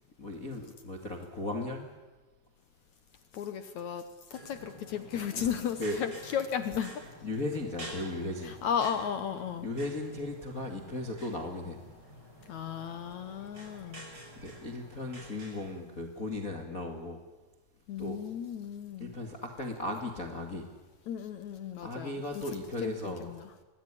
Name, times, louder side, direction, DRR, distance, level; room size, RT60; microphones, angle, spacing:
voice 1, 0.2-1.9 5.4-5.5 5.8-6.0 7.2-8.5 9.6-11.8 14.4-17.2 18.0-18.2 19.0-20.7 21.8-23.3, left 2 dB, 30° left, 1.7 m, -36 dB
voice 2, 3.3-4.1 4.3-7.1 8.4-9.7 12.5-14.1 17.9-19.1 21.1-22.4 22.8-23.5, left 8 dB, 75° left, 1.7 m, -35 dB
sound 1, 4.3-15.7, right 1 dB, 25° right, 5.7 m, -49 dB
26.5 x 20.0 x 10.0 m
omnidirectional pair, 4.9 m